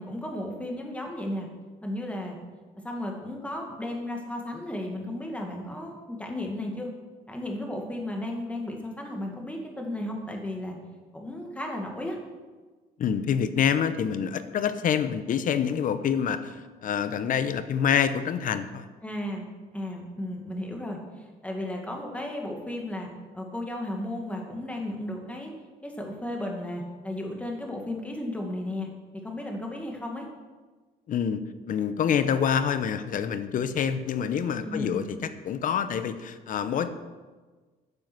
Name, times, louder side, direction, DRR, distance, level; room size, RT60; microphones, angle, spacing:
voice 1, 0.0-1.5 1.8-2.4 2.8-6.9 7.3-10.8 11.1-12.2 19.0-19.5 19.7-23.1 23.3-25.5 25.8-28.9 29.2-30.3 34.6-35.0, left 1 dB, 10° left, 1 dB, 2.0 m, -34 dB
voice 2, 13.0-18.9 31.1-31.4 31.7-35.2 35.4-36.9, left 8 dB, 50° left, 11 dB, 0.8 m, -26 dB
9.6 x 7.4 x 6.2 m, 1.3 s
cardioid pair, 110°, 17 cm